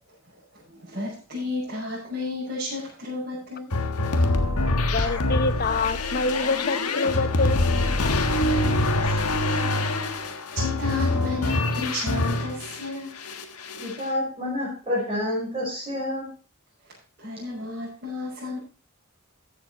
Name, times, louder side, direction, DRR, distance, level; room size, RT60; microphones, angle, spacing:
voice 1, 0.5-3.7 4.1-4.3 8.9-9.2 9.5-9.6 10.1-13.1 17.2-18.6, left 3 dB, 45° right, -10 dB, 5.9 m, -33 dB
sound 1, 3.7-12.9 13.2-14.0, left 2 dB, 85° left, 1.4 m, -25 dB
voice 2, 4.9-7.6, left 3 dB, 45° left, 13 dB, 0.7 m, -26 dB
voice 3, 13.8-16.3, left 1 dB, 25° right, -4 dB, 5.0 m, -28 dB
14.0 x 7.5 x 4.1 m, 0.36 s
head